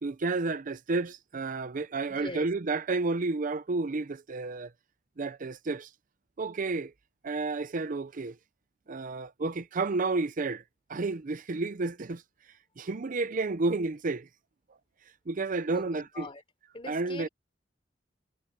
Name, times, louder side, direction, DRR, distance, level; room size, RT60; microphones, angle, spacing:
voice 1, 0.0-4.7 5.2-5.9 6.4-6.9 7.2-8.4 8.9-10.6 10.9-12.2 12.8-14.3 15.3-16.3 16.9-17.3, right 3 dB, 45° right, 0.6 m, -31 dB
voice 2, 2.1-2.5 15.7-16.4 16.7-17.3, left 2 dB, 30° left, 4.1 m, -42 dB
head